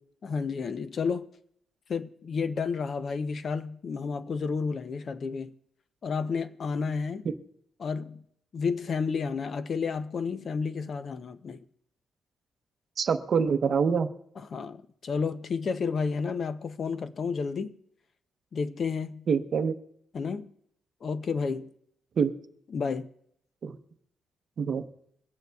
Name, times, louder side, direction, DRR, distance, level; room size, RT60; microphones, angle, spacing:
voice 1, 0.2-1.3 1.9-5.5 6.0-7.3 7.8-8.2 8.5-11.6 14.3-17.7 18.5-19.3 20.1-20.5 21.0-21.7 22.7-23.1, left 5 dB, 45° left, 0.5 m, -31 dB
voice 2, 13.0-14.1 19.3-19.8 22.2-22.3 23.6-23.8 24.6-24.8, right 6 dB, 50° right, 0.7 m, -25 dB
23.5 x 9.2 x 2.3 m
cardioid pair, 140°, 0 cm